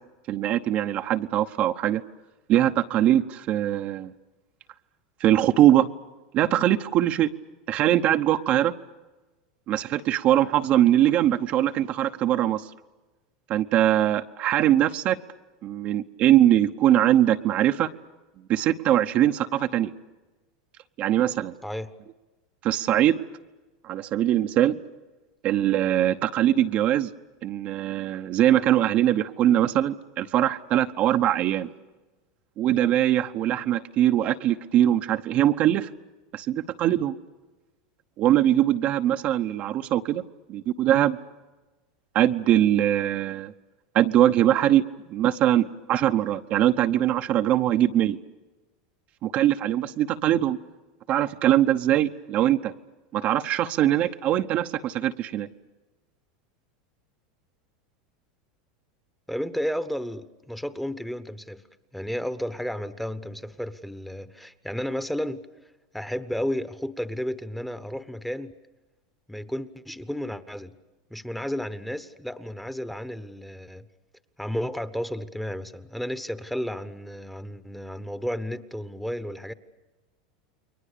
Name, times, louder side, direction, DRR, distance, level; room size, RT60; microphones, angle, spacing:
voice 1, 0.3-2.0 2.5-4.1 5.2-5.9 6.3-7.3 7.7-8.7 9.7-12.7 13.5-15.2 15.6-17.9 18.5-19.9 21.0-21.5 22.6-23.2 23.8-24.8 25.4-27.1 27.4-31.7 32.6-35.9 36.3-37.1 38.2-40.2 40.5-41.2 42.1-43.5 43.9-44.8 45.1-48.2 49.2-50.6 51.1-52.7 53.1-55.5, right 12 dB, 45° right, 7 dB, 0.9 m, -22 dB
voice 2, 21.6-21.9 59.3-61.6 61.9-65.5 65.9-68.5 69.3-70.7 71.1-73.8 74.4-79.5, equal, ahead, 12 dB, 1.1 m, -32 dB
29.5 x 22.5 x 6.8 m, 1.2 s
supercardioid pair, 120°, 3 cm